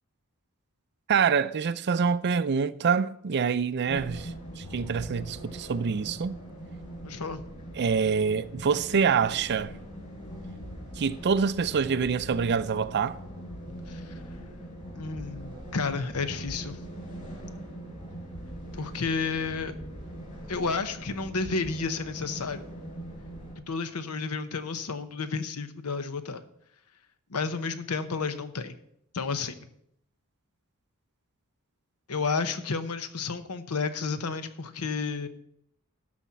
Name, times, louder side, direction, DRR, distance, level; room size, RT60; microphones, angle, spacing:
voice 1, 1.1-6.4 7.8-9.7 11.0-13.2, right 6 dB, 50° right, 0.4 m, -26 dB
sound 1, 3.9-23.6, right 1 dB, 35° left, 4.2 m, -41 dB
voice 2, 7.0-7.4 13.9-14.2 14.9-16.8 18.7-19.7 20.5-22.6 23.6-26.4 27.3-28.8 29.1-29.5 32.1-35.3, left 4 dB, 80° left, 0.9 m, -31 dB
12.5 x 4.3 x 7.4 m
head